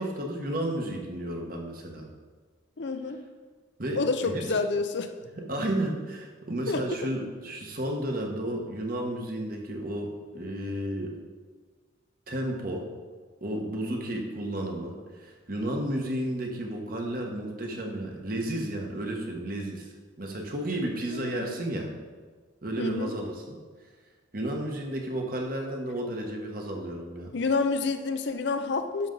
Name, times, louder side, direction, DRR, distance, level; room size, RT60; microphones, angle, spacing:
voice 1, 0.0-2.1 3.8-4.6 5.4-11.1 12.3-12.9 13.4-21.9 22.6-23.6 24.3-27.3, right 1 dB, 45° right, 1 dB, 1.3 m, -32 dB
voice 2, 2.8-3.2 4.0-5.1 6.7-6.8 21.1-21.6 22.8-23.1 27.3-29.1, left 4 dB, 60° left, 8 dB, 0.6 m, -28 dB
11.0 x 6.6 x 3.9 m, 1.5 s
head